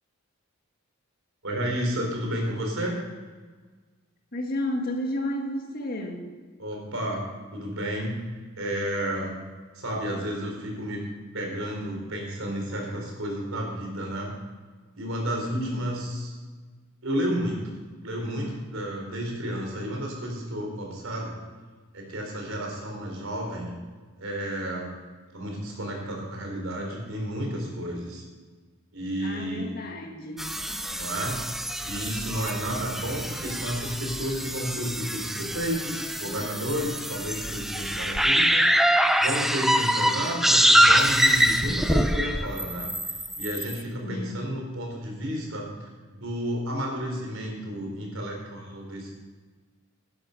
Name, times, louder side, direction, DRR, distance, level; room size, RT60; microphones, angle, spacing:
voice 1, 1.4-3.0 6.6-7.2 7.5-8.2 8.6-9.3 9.8-11.1 11.3-14.3 14.9-16.4 17.0-17.6 18.0-21.4 21.9-23.7 24.2-25.0 25.3-28.2 28.9-29.7 31.0-31.4 31.8-38.9 39.2-42.9 43.4-45.7 46.1-49.1, equal, 70° right, 1 dB, 4.1 m, -31 dB
voice 2, 4.3-6.3 15.5-15.9 29.2-30.5 44.0-44.4, left 1 dB, 45° left, 2 dB, 1.7 m, -32 dB
sound 1, 30.4-43.8, equal, ahead, 0.4 m, -24 dB
11.5 x 10.5 x 5.8 m, 1.4 s
head